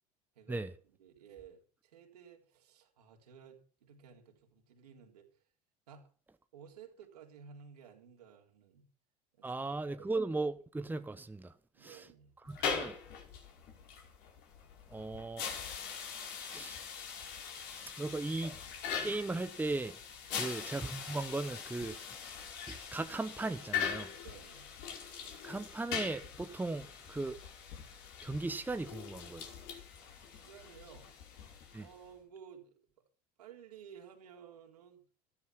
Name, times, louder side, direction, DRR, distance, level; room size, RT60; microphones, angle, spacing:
voice 1, 0.4-0.7 1.0-5.3 5.9-6.1 6.5-8.9 9.4-10.1 11.7-12.3 20.3-20.6 24.2-24.7 30.3-31.1 31.8-32.8 33.4-35.0, right 7 dB, 80° right, 3.8 m, -55 dB
voice 2, 9.4-11.5 11.8-12.1 12.4-12.9 14.9-15.5 16.5-16.8 18.0-18.6 19.0-20.0 20.3-22.0 22.7-24.1 25.4-27.4 28.2-29.5 31.7-31.9, right 3 dB, 10° right, 1.0 m, -37 dB
sound 1, 12.5-32.1, left 7 dB, 60° left, 4.9 m, -42 dB
14.5 x 13.5 x 5.9 m
hypercardioid pair, 70°, 20 cm